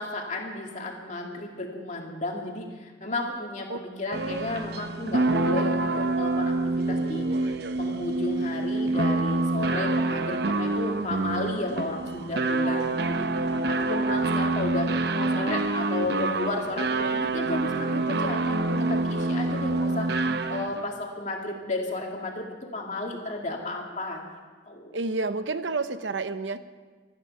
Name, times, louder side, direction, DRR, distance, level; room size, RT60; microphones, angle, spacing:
voice 1, 0.0-22.5 22.7-24.2 24.7-25.0, left 2 dB, 40° left, 0 dB, 2.4 m, -33 dB
sound 1, 4.1-20.9, right 2 dB, 60° right, 0.7 m, -27 dB
voice 2, 4.1-4.5 24.9-26.6, right 3 dB, 85° right, 11 dB, 0.8 m, -30 dB
24.5 x 9.9 x 5.5 m, 1.4 s
head